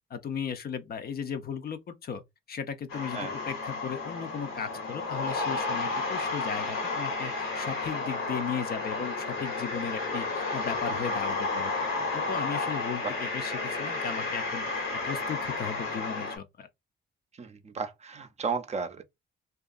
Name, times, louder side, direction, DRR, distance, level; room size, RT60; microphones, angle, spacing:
voice 1, 0.1-2.2 2.5-11.7 12.1-16.7, left 7 dB, 50° left, 0.5 m, -36 dB
sound 1, 2.9-16.4, left 3 dB, 85° left, 1.2 m, -32 dB
voice 2, 17.3-19.0, right 5 dB, 35° right, 0.5 m, -34 dB
2.7 x 2.3 x 2.4 m
cardioid pair, 105°, 21 cm